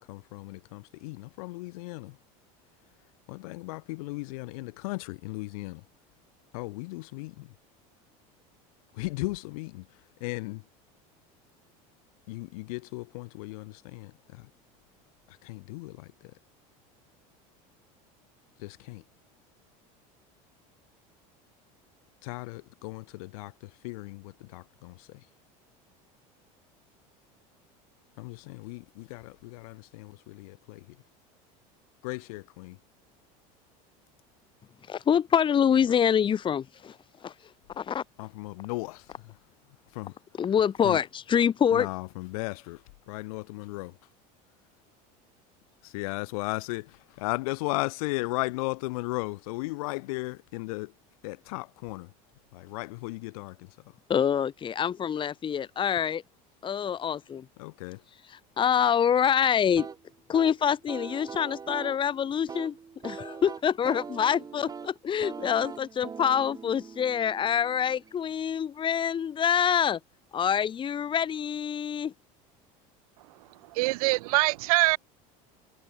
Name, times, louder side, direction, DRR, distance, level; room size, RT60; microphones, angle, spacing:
voice 1, 0.0-2.2 3.3-5.9 6.5-7.5 8.9-10.7 12.3-14.5 15.3-16.3 18.6-19.0 22.2-25.3 28.2-31.0 32.0-32.8 38.2-39.4 39.9-40.4 40.8-41.0 41.7-44.0 45.8-50.9 51.2-52.1 52.5-54.0 57.6-58.0, left 24 dB, 80° left, 6.7 m, -36 dB
voice 2, 34.9-37.3 37.7-38.0 40.4-41.9 54.1-56.2 56.6-57.5 58.6-59.9 60.3-62.8 63.0-70.0 70.3-72.1, left 8 dB, 25° left, 1.8 m, -26 dB
sound 1, 59.8-68.3, right 5 dB, 20° right, 3.9 m, -42 dB
voice 3, 73.7-75.0, right 23 dB, 85° right, 0.7 m, -23 dB
supercardioid pair, 135°, 18 cm